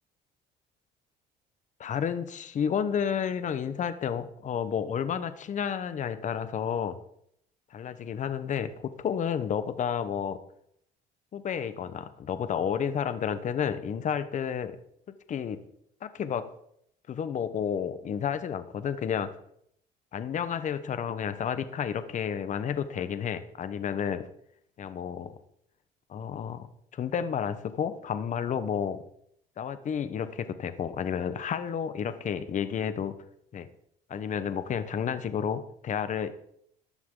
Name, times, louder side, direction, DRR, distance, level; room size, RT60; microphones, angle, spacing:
voice 1, 1.8-7.0 7.7-10.4 11.3-14.8 15.3-15.6 16.0-16.5 17.1-19.3 20.1-24.3 24.8-25.3 26.1-29.0 29.6-33.2 33.5-33.7 34.1-36.3, left 8 dB, 45° left, 12 dB, 1.1 m, -31 dB
15.0 x 11.5 x 3.9 m, 0.71 s
cardioid pair, 110°, 17 cm